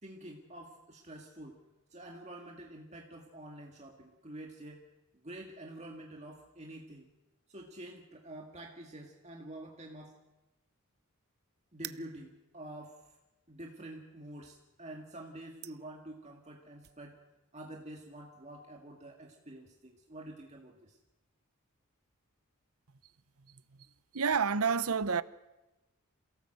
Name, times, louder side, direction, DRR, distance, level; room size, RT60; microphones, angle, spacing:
voice 1, 0.0-1.6 1.9-4.9 5.2-7.1 7.5-10.2 11.7-13.1 13.5-17.2 17.5-21.0, right 1 dB, 30° right, 2.1 m, -48 dB
sound 1, 11.7-17.0, right 14 dB, 45° right, 0.8 m, -51 dB
voice 2, 24.1-25.2, right 5 dB, 80° right, 1.0 m, -29 dB
28.0 x 17.5 x 7.9 m
head